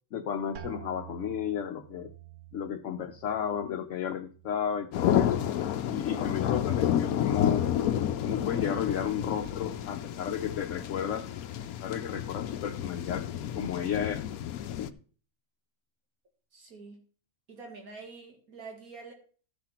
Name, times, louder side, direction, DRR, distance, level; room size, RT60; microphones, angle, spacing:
voice 1, 0.1-2.1 2.5-5.5 5.9-7.7 8.2-11.3 11.8-13.3 13.5-14.3 14.8-14.9, left 8 dB, 65° left, 5 dB, 1.1 m, -33 dB
sound 1, 0.6-6.2 6.5-7.2 7.8-8.2, right 11 dB, 65° right, 1.1 m, -50 dB
sound 2, 4.9-14.9, left 10 dB, 85° left, 1.1 m, -30 dB
voice 2, 16.5-17.0 17.5-19.1, right 4 dB, 90° right, 1 dB, 2.4 m, -46 dB
14.0 x 5.9 x 4.3 m, 0.41 s
omnidirectional pair, 1.5 m